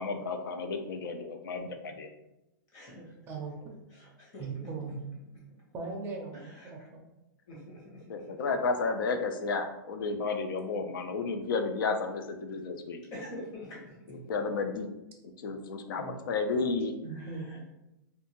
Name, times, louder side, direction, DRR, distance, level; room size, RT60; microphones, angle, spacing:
voice 1, 0.0-2.1 8.1-13.0 14.3-14.9 15.2-16.9, left 4 dB, 85° left, 7 dB, 0.4 m, -32 dB
voice 2, 2.7-3.3 3.9-4.5 6.3-6.9 7.5-8.4 13.1-14.2 17.1-17.7, left 1 dB, 30° left, -5 dB, 1.0 m, -46 dB
voice 3, 3.3-3.6 4.4-5.0 5.7-7.0 16.0-16.2 17.0-17.7, right 4 dB, 20° right, 0 dB, 0.4 m, -39 dB
2.6 x 2.2 x 2.9 m, 0.94 s
supercardioid pair, 160°, 11 cm